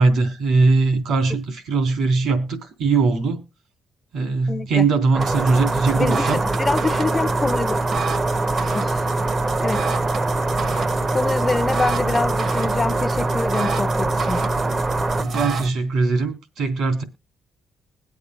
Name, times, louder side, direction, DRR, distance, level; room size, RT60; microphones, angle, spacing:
voice 1, 0.0-3.4 4.1-6.4 15.2-17.0, right 4 dB, 80° right, 3.3 m, -20 dB
voice 2, 4.5-4.9 5.9-7.8 8.7-9.0 9.6-9.8 11.1-14.4, left 3 dB, 25° left, 0.7 m, -25 dB
sound 1, 5.1-15.2, right 3 dB, 25° right, 0.8 m, -25 dB
sound 2, 5.2-15.7, right 2 dB, 55° right, 1.2 m, -26 dB
21.5 x 8.4 x 2.3 m
cardioid pair, 90°, 0 cm